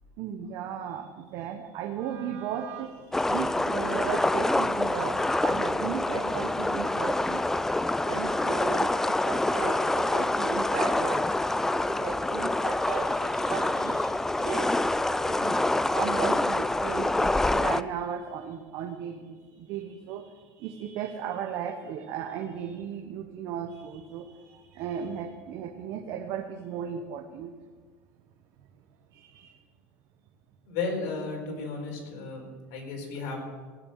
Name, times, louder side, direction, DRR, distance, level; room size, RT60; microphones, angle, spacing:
voice 1, 0.2-7.4 8.0-11.3 11.9-27.5 29.1-29.6, right 8 dB, 60° right, 4 dB, 1.2 m, -36 dB
sound 1, 3.1-17.8, left 2 dB, 5° left, 0.4 m, -26 dB
voice 2, 30.7-33.4, left 4 dB, 75° left, 0 dB, 4.6 m, -34 dB
18.0 x 7.1 x 6.5 m, 1.5 s
supercardioid pair, 115°, 6 cm